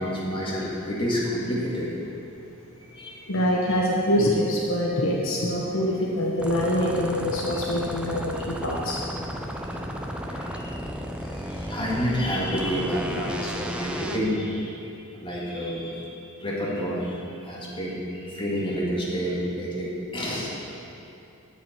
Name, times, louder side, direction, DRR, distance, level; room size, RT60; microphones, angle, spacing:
voice 1, 0.0-2.2 2.8-3.3 3.6-3.7 8.3-8.8 10.2-10.9 11.2-16.1 16.4-20.8, equal, 25° left, -6 dB, 2.1 m, -29 dB
voice 2, 3.3-9.0, equal, 70° left, -2 dB, 1.0 m, -24 dB
sound 1, 6.4-14.2, equal, 5° right, 0.6 m, -34 dB
10.5 x 7.6 x 4.5 m, 2.7 s
head